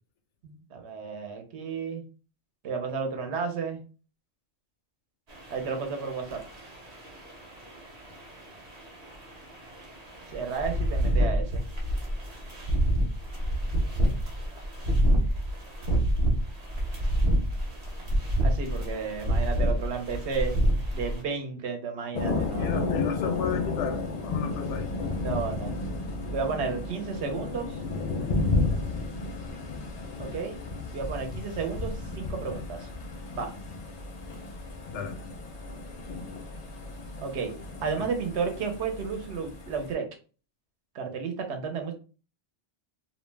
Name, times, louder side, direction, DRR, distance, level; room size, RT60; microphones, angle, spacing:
voice 1, 0.4-2.0 2.6-3.8 5.5-6.4 10.3-11.6 18.4-20.5 20.9-22.8 25.2-25.7 26.3-27.8 30.2-30.6 30.9-32.9 33.3-33.5 37.2-37.5 37.8-40.0 40.9-41.9, right 5 dB, 75° right, 5 dB, 0.9 m, -32 dB
sound 1, 5.3-21.2, equal, 45° right, 0.6 m, -28 dB
Thunder, 22.1-39.9, left 3 dB, 50° left, 0.5 m, -33 dB
voice 2, 22.6-24.9 31.2-31.3 34.9-35.2, left 7 dB, 85° left, 6 dB, 0.9 m, -33 dB
2.4 x 2.1 x 3.2 m, 0.36 s
omnidirectional pair, 1.2 m